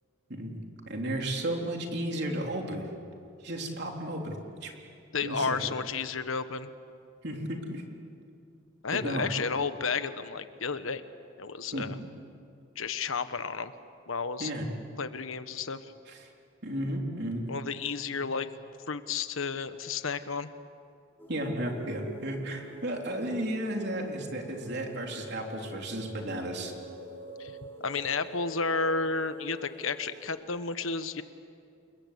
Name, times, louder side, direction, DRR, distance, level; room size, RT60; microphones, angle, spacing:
voice 1, 0.9-2.9 3.4-4.4 4.6-4.7 5.2-5.6 7.2-7.8 8.9-9.3 11.7-11.9 14.4-14.7 16.1-16.3 16.6-17.5 21.3-26.7, right 1 dB, 55° right, 1 dB, 3.7 m, -33 dB
voice 2, 5.1-6.7 8.8-11.0 11.4-12.0 12.8-13.7 14.1-14.5 15.0-15.9 17.5-18.5 18.9-20.5 27.4-27.5 27.8-31.2, left 4 dB, 80° left, 11 dB, 1.2 m, -32 dB
sound 1, 21.2-30.4, right 1 dB, 10° left, 4.2 m, -47 dB
29.0 x 21.5 x 8.4 m, 2.5 s
head